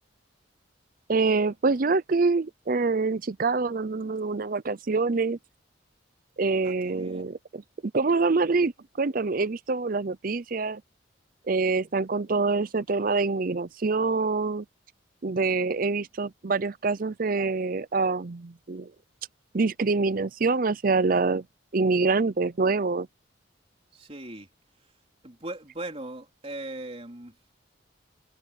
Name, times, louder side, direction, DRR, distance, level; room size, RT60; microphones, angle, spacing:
voice 1, 1.1-5.4 6.4-8.7 9.0-10.8 11.5-14.6 15.2-18.9 19.5-21.4 21.7-23.1, right 4 dB, 45° right, 0.6 m, -25 dB
voice 2, 6.6-7.3 23.9-24.5 25.2-27.3, right 2 dB, 30° right, 4.1 m, -39 dB
head